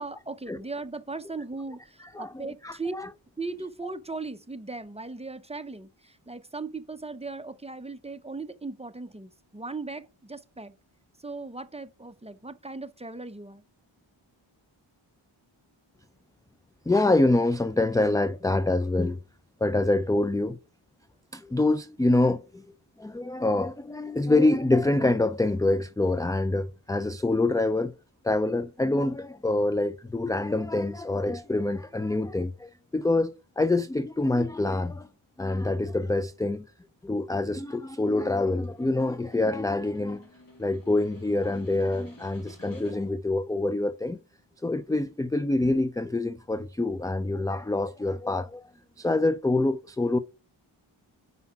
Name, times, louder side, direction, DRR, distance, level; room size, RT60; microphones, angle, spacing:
voice 1, 0.0-3.0 3.4-10.7 11.2-13.6, right 3 dB, 10° right, 0.8 m, -38 dB
voice 2, 2.0-3.1 16.9-19.2 19.6-20.6 21.3-22.7 23.0-27.9 28.2-35.1 35.4-36.6 37.0-40.3 40.6-44.2 44.6-48.7 49.0-50.2, left 2 dB, 10° left, 0.4 m, -26 dB
Snare drum, 38.4-43.3, left 2 dB, 40° left, 3.5 m, -54 dB
5.6 x 5.5 x 5.8 m
cardioid pair, 45°, 50 cm